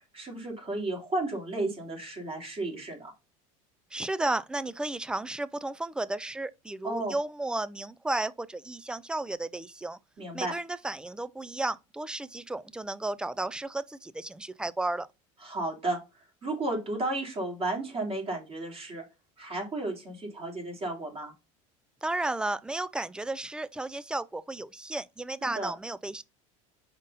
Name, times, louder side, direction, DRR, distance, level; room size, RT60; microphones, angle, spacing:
voice 1, 0.1-3.1 6.8-7.2 10.2-10.5 15.4-16.0 16.4-19.0 19.4-21.3 25.4-25.7, right 2 dB, 35° right, 3.0 m, -33 dB
voice 2, 3.9-10.0 10.3-15.1 22.0-26.2, right 2 dB, 5° right, 0.4 m, -33 dB
5.2 x 4.1 x 5.4 m
supercardioid pair, 105°, 17 cm